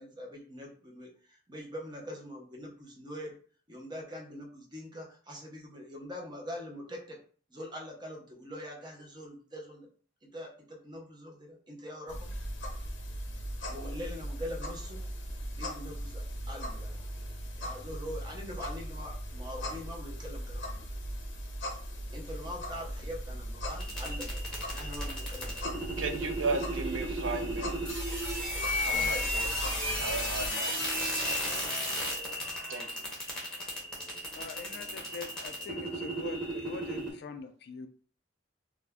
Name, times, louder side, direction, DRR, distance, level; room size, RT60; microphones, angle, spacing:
voice 1, 0.0-3.4 3.7-7.2 7.5-9.9 10.2-12.4 13.7-15.0 15.5-17.0 17.5-20.9 22.1-26.3 28.8-29.2, equal, 20° right, 0 dB, 0.7 m, -43 dB
sound 1, 12.1-30.5, equal, 70° left, 0.7 m, -39 dB
sound 2, 23.8-37.1, equal, 5° left, 0.8 m, -34 dB
voice 2, 26.0-28.1 28.8-29.5 30.0-31.1 32.7-33.0, right 3 dB, 80° right, 5 dB, 0.5 m, -36 dB
voice 3, 34.4-37.9, left 4 dB, 55° left, 8 dB, 0.3 m, -43 dB
2.5 x 2.2 x 3.4 m, 0.43 s
head